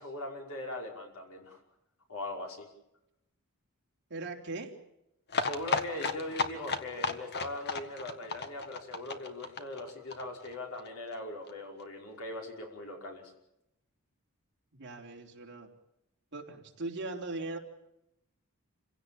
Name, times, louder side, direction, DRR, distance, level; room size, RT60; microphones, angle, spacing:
voice 1, 0.0-1.6 2.1-2.7 5.4-13.3, left 1 dB, 70° left, 1 dB, 5.4 m, -40 dB
voice 2, 4.1-4.7 14.7-15.7 16.3-17.6, right 2 dB, 50° right, 0 dB, 3.5 m, -39 dB
sound 1, 5.3-10.9 11.1-11.2 11.5-11.6 11.8-11.9, left 4 dB, 50° left, 1.6 m, -34 dB
28.0 x 16.5 x 8.7 m, 0.87 s
head